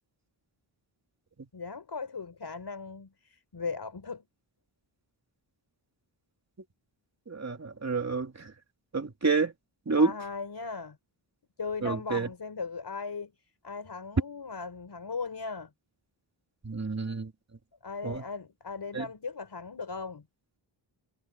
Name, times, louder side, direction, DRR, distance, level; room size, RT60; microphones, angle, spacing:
voice 1, 1.5-4.2 10.0-11.0 11.6-13.3 13.6-15.7 17.8-20.3, left 4 dB, 55° left, 4.8 m, -38 dB
voice 2, 7.3-8.5 8.9-9.5 9.9-10.1 11.8-12.3 16.6-17.3 18.0-18.2 18.9-19.1, right 4 dB, 35° right, 3.0 m, -29 dB
wide cardioid pair, 120°, 48 cm